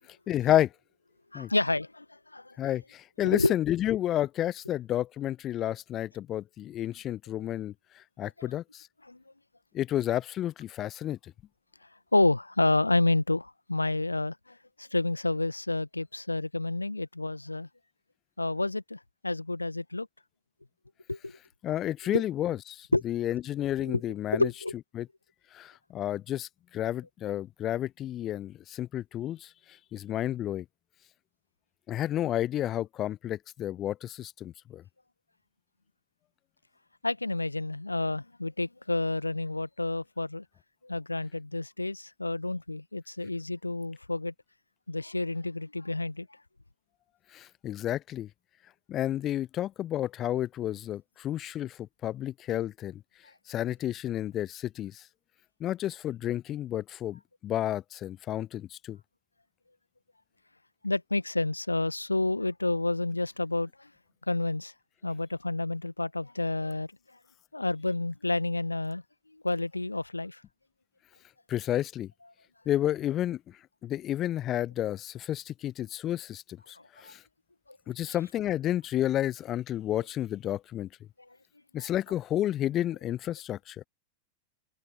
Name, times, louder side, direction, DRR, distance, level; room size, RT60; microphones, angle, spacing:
voice 1, 0.3-0.7 1.3-1.5 2.6-8.9 9.7-11.3 21.6-24.5 24.9-25.1 25.5-29.5 29.9-30.6 31.9-34.8 47.3-48.3 48.9-53.0 53.5-55.0 55.6-59.0 71.5-72.1 72.7-73.4 73.8-77.2 77.9-80.9 81.7-83.8, left 12 dB, 30° left, 0.7 m, -31 dB
voice 2, 1.3-2.0 2.3-2.6 3.2-3.5 9.1-9.2 12.1-17.7 18.4-20.1 21.1-21.3 22.1-22.2 22.9-23.0 23.8-24.0 24.3-24.8 37.0-40.4 40.8-44.3 44.9-46.3 60.8-63.9 64.3-64.7 65.0-66.9 67.5-69.0 69.4-70.4 77.0-77.1 77.7-77.8 78.1-78.2 81.8-81.9, left 2 dB, 85° left, 1.5 m, -29 dB
open air
figure-of-eight pair, 90°, 0 cm